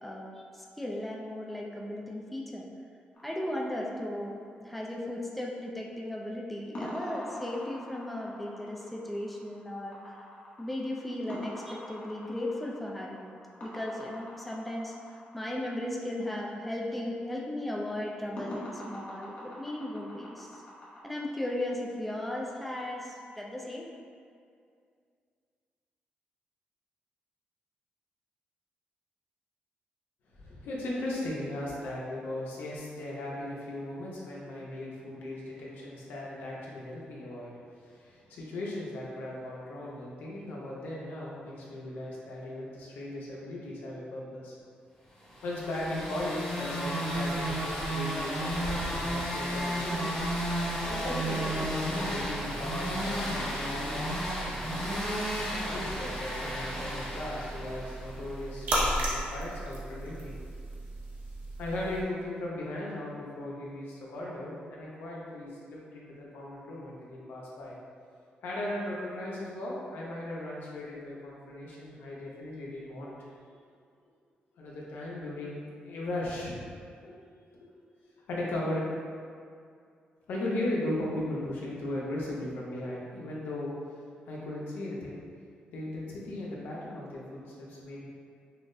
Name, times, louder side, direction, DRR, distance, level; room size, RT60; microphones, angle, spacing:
voice 1, 0.0-2.7 3.2-10.2 10.6-13.4 13.6-20.6 21.0-23.9, left 1 dB, ahead, -2 dB, 0.3 m, -36 dB
sound 1, 3.2-4.5 6.7-15.4 18.4-21.0, equal, 45° left, 0.9 m, -44 dB
voice 2, 30.3-37.5 37.8-44.6 45.4-50.2 50.9-54.1 55.7-60.4 61.6-67.7 68.4-73.1 74.6-76.7 77.0-77.1 77.5-77.7 78.3-78.8 80.3-83.7 84.3-85.2 85.7-88.1, left 1 dB, 85° left, -5 dB, 0.8 m, -37 dB
sound 2, 45.3-58.3, equal, 20° left, 1.0 m, -33 dB
sound 3, 50.2-62.0, right 1 dB, 70° right, 0.8 m, -37 dB
5.7 x 2.0 x 2.6 m, 2.3 s
cardioid pair, 145°, 3 cm